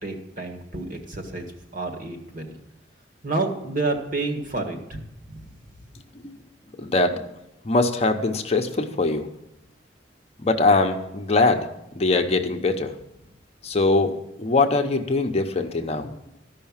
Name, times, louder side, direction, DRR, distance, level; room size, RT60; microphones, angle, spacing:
voice 1, 0.0-1.5 1.7-2.6 3.2-5.0, right 3 dB, 45° right, 3 dB, 1.6 m, -29 dB
voice 2, 6.8-7.3 7.6-9.3 10.4-11.7 12.0-12.9 13.6-14.1 14.4-16.1, left 3 dB, 35° left, 5 dB, 0.7 m, -22 dB
13.5 x 5.7 x 7.2 m, 0.86 s
head